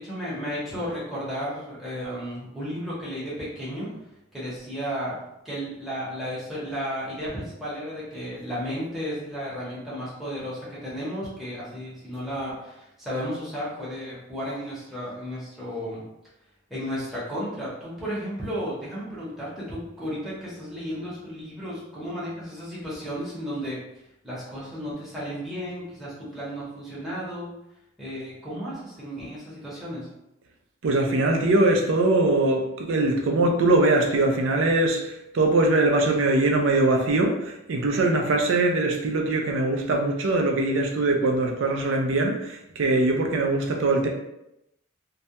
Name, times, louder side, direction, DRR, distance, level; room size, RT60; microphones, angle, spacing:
voice 1, 0.0-3.9 4.3-5.2 5.4-16.0 16.7-23.8 24.2-27.5 28.0-30.1, equal, ahead, -9 dB, 0.8 m, -33 dB
voice 2, 30.8-44.1, right 2 dB, 70° right, 2 dB, 0.4 m, -22 dB
2.3 x 2.1 x 2.8 m, 0.86 s
head